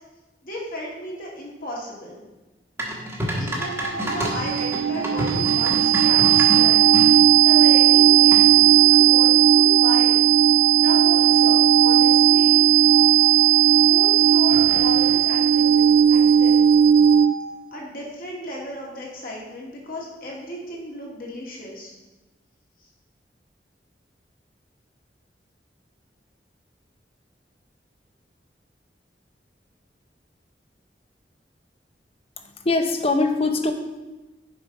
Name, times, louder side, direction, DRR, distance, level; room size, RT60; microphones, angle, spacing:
voice 1, 0.4-2.2 3.4-6.8 7.4-10.2 10.7-12.6 13.2-16.6 17.7-21.9, left 1 dB, 50° left, -3 dB, 2.0 m, -35 dB
sound 1, 2.8-7.1 8.3-8.7, equal, 15° right, 1.2 m, -28 dB
sound 2, 3.7-17.5, right 10 dB, 65° right, 0.3 m, -16 dB
sound 3, 14.0-14.1 14.4-17.9, left 1 dB, 75° left, 1.5 m, -44 dB
voice 2, 32.4-33.7, left 3 dB, 35° left, 6 dB, 0.7 m, -22 dB
6.9 x 5.1 x 5.1 m, 1.1 s
head